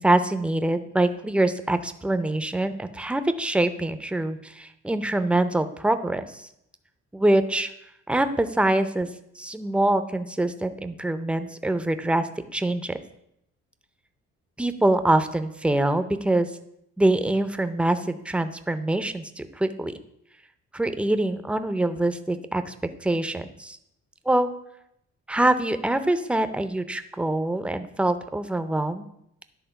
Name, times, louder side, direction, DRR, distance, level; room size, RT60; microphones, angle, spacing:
voice 1, 0.0-6.4 7.1-7.7 8.1-9.1 9.4-13.0 14.6-16.5 17.0-19.9 20.7-22.7 23.0-23.8 24.3-24.5 25.3-29.0, right 1 dB, 5° right, 10 dB, 0.5 m, -24 dB
10.5 x 3.5 x 5.7 m, 0.77 s
cardioid pair, 90°, 30 cm